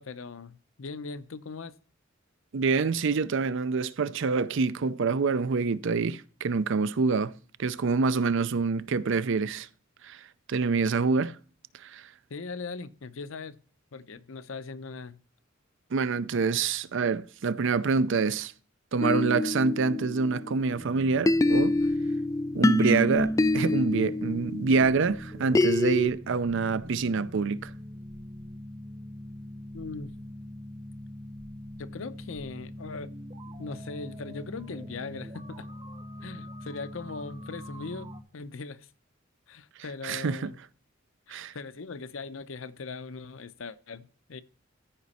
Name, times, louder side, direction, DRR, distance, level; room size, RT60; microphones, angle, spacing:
voice 1, 0.0-1.7 12.3-13.6 13.9-15.2 29.7-30.1 31.8-33.1 33.6-35.7 36.2-38.9 39.5-40.6 41.3-44.4, left 4 dB, 70° left, 0.7 m, -40 dB
voice 2, 2.5-7.3 7.6-9.7 10.0-10.2 10.5-11.3 11.8-12.0 15.9-18.5 18.9-21.7 22.5-27.7 40.0-40.5 41.3-41.5, right 4 dB, 65° right, 0.5 m, -26 dB
sound 1, 19.0-20.8 21.3-26.1, left 2 dB, 15° left, 0.3 m, -26 dB
sound 2, 20.7-38.2, equal, 30° right, 0.9 m, -43 dB
14.0 x 5.2 x 4.2 m
head